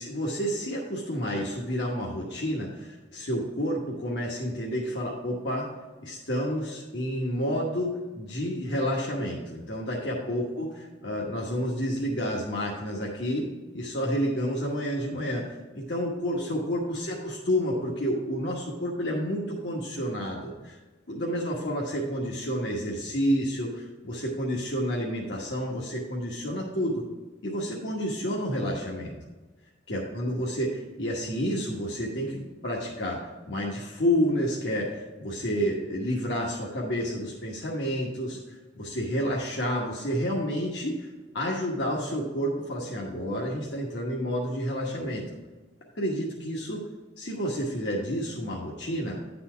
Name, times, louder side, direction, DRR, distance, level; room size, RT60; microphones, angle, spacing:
voice 1, 0.0-5.7 6.0-20.8 21.1-27.0 27.4-29.1 29.9-45.3 45.9-46.8 47.2-49.2, equal, 75° left, -3 dB, 1.2 m, -30 dB
10.0 x 4.3 x 5.7 m, 1.2 s
head